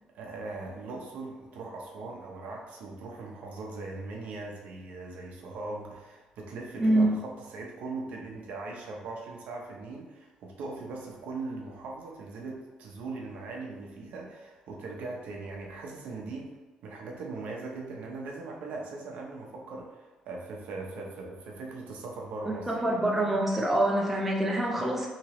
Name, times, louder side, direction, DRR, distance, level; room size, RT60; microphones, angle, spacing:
voice 1, 0.1-16.5 16.8-22.7, right 3 dB, 75° right, -1 dB, 0.6 m, -40 dB
voice 2, 22.7-25.1, right 1 dB, 10° right, -3 dB, 0.6 m, -25 dB
2.9 x 2.9 x 2.9 m, 1.2 s
cardioid pair, 120°, 2 cm